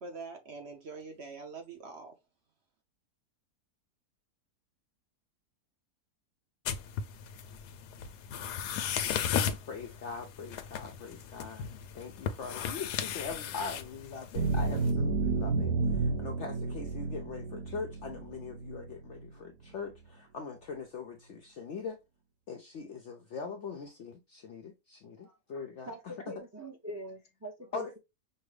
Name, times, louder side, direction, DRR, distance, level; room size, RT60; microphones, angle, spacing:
voice 1, 0.0-2.1, right 4 dB, 55° right, 0.8 m, -44 dB
sound 1, 6.6-14.9, left 8 dB, 85° left, 1.1 m, -36 dB
voice 2, 9.6-11.7 11.9-22.0 22.5-26.1 27.7-27.9, left 5 dB, 70° left, 0.7 m, -42 dB
sound 2, 14.4-19.1, right 3 dB, 85° right, 1.2 m, -31 dB
voice 3, 25.8-28.0, right 1 dB, 25° right, 0.3 m, -43 dB
5.4 x 2.1 x 3.2 m
omnidirectional pair, 1.7 m